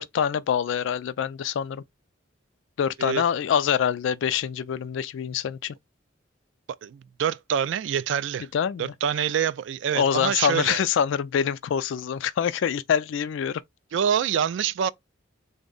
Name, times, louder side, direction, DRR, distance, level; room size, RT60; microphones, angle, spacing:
voice 1, 0.0-1.8 2.8-5.8 8.5-8.9 10.0-13.6, left 8 dB, 70° left, 0.3 m, -25 dB
voice 2, 6.7-8.5 8.8-10.8 13.9-14.9, right 8 dB, 65° right, 0.3 m, -26 dB
3.5 x 2.1 x 3.8 m
head